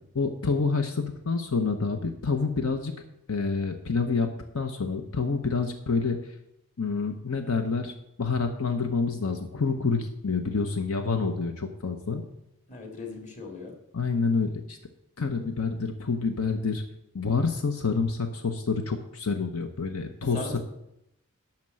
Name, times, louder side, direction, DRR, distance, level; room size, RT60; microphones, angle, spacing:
voice 1, 0.1-2.9 3.3-6.2 6.8-7.9 8.2-12.2 13.9-14.8 15.2-16.8 17.1-20.6, left 4 dB, 80° left, 6 dB, 0.9 m, -28 dB
voice 2, 12.7-13.7 20.3-20.6, left 3 dB, 35° left, 2 dB, 2.0 m, -38 dB
12.0 x 4.4 x 7.6 m, 0.82 s
head